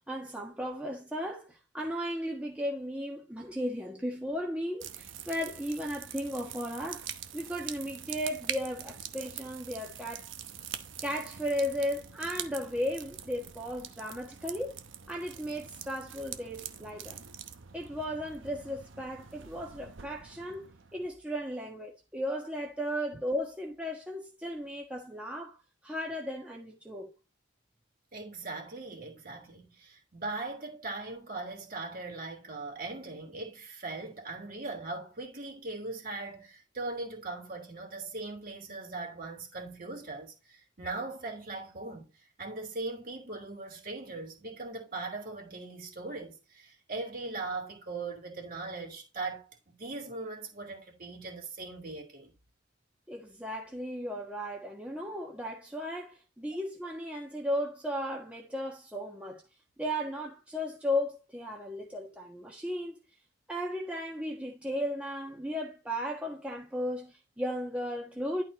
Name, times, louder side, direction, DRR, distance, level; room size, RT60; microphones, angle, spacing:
voice 1, 0.1-7.1 7.3-10.3 10.7-14.8 15.1-17.2 17.7-20.6 20.9-25.6 25.8-27.1 53.1-59.4 59.8-63.0 63.5-68.4, equal, 5° right, 1.4 m, -35 dB
sound 1, 4.8-21.1, right 9 dB, 85° right, 0.9 m, -44 dB
voice 2, 28.1-42.1 42.4-52.3, right 3 dB, 45° right, 2.9 m, -40 dB
11.0 x 4.4 x 4.2 m
head